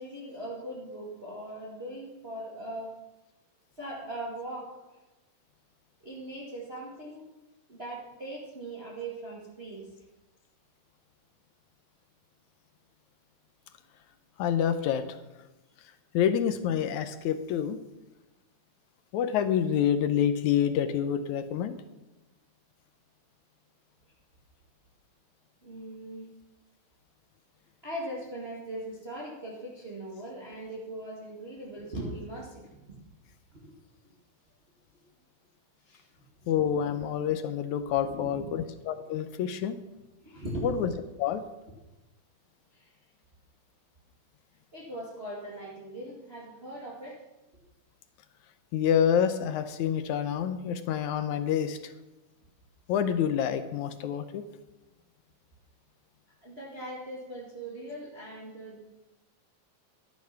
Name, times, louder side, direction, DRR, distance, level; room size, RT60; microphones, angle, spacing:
voice 1, 0.0-2.9 3.8-5.0 6.0-7.3 7.7-9.9 25.6-26.3 27.8-32.9 33.5-33.7 34.9-35.0 35.8-36.1 38.0-38.5 40.2-40.7 42.7-42.9 44.7-47.2 56.4-58.8, right 1 dB, 20° right, -4 dB, 1.9 m, -40 dB
voice 2, 14.4-15.2 16.1-17.8 19.1-21.8 36.5-39.8 40.6-40.9 41.2-41.4 48.7-51.9 52.9-54.5, left 9 dB, 75° left, 10 dB, 2.0 m, -27 dB
13.0 x 10.5 x 5.8 m, 1.0 s
omnidirectional pair, 3.7 m